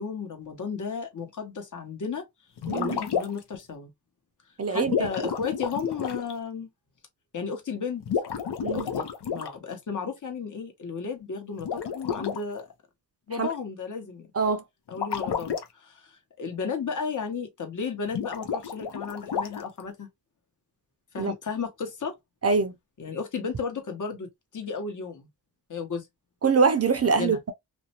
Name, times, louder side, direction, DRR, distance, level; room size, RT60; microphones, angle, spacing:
voice 1, 0.0-2.2 2.7-3.9 4.7-6.7 7.3-8.0 8.7-12.6 13.3-14.3 14.9-20.1 21.1-22.1 23.0-25.3 25.7-26.1 27.0-27.4, left 5 dB, 50° left, 1.0 m, -34 dB
sound 1, 2.6-3.6 4.8-6.3 8.0-9.5 11.6-12.4 14.9-15.6 18.1-19.8, left 7 dB, 75° left, 0.7 m, -31 dB
voice 2, 2.7-3.0 4.6-4.9 8.6-8.9 13.4-13.5 14.4-14.6 21.2-21.3 22.4-22.7 26.4-27.5, right 5 dB, 35° right, 0.5 m, -23 dB
2.5 x 2.1 x 2.7 m
cardioid pair, 70°, 41 cm